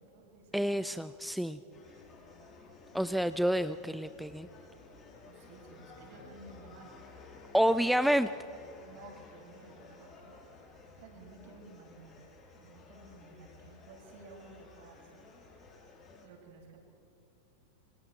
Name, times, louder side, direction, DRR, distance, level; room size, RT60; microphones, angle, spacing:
voice 1, 0.0-1.0 1.7-2.1 5.2-6.9 7.6-8.0 8.8-12.2 12.5-15.3 16.2-16.8, right 3 dB, 50° right, 1 dB, 6.4 m, -54 dB
voice 2, 0.5-1.6 2.9-4.5 7.5-8.3, equal, ahead, 12 dB, 0.5 m, -28 dB
sound 1, 1.7-16.3, left 4 dB, 20° left, 7.1 m, -54 dB
27.0 x 25.0 x 4.7 m, 2.6 s
figure-of-eight pair, 90°, 0 cm